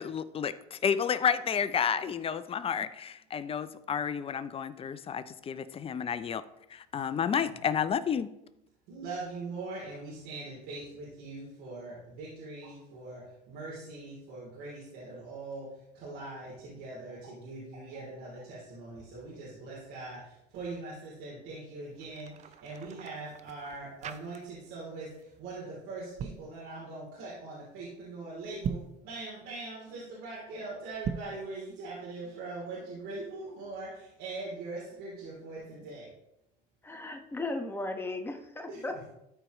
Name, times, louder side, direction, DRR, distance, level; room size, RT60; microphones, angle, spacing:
voice 1, 0.0-6.4 6.7-8.3, left 7 dB, 30° left, 13 dB, 0.6 m, -31 dB
voice 2, 8.9-25.1 25.4-36.1 38.7-39.0, right 3 dB, 75° right, -6 dB, 3.2 m, -42 dB
sound 1, 21.9-24.8 25.1-25.4 26.0-26.5 28.5-29.0 30.9-31.4, right 7 dB, 40° right, 0.6 m, -40 dB
voice 3, 36.8-39.1, left 2 dB, 10° left, 4 dB, 1.3 m, -36 dB
13.0 x 4.5 x 3.1 m, 0.85 s
supercardioid pair, 100°, 19 cm